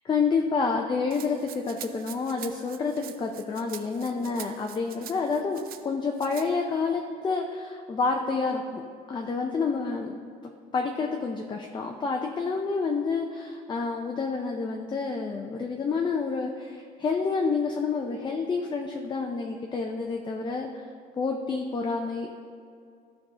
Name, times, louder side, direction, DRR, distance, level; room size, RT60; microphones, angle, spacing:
voice 1, 0.0-8.8 9.1-10.1 10.7-20.7 21.2-22.3, left 4 dB, 25° left, 2 dB, 0.6 m, -29 dB
Rattle (instrument), 1.1-5.8 6.2-6.5, right 10 dB, 60° right, 0.5 m, -44 dB
12.5 x 4.7 x 3.7 m, 2.3 s
cardioid pair, 110°, 17 cm